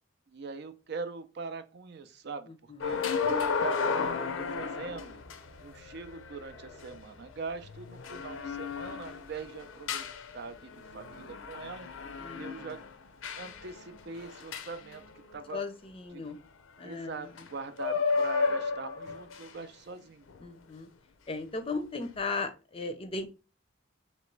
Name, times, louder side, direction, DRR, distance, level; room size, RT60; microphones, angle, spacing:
voice 1, 0.3-3.3 3.6-5.2 5.6-10.1 10.3-11.9 12.3-12.8 13.4-15.0 15.3-15.6 16.1-16.2 16.8-20.3, right 4 dB, 60° right, 0.5 m, -42 dB
sound 1, 2.8-15.5 17.3-17.5 17.8-19.6 20.3-20.4, left 5 dB, 85° left, 0.5 m, -34 dB
voice 2, 12.2-12.5 15.5-16.4 16.8-17.3 20.4-20.9 21.3-23.3, left 3 dB, 30° left, 0.5 m, -36 dB
3.0 x 3.0 x 4.5 m
head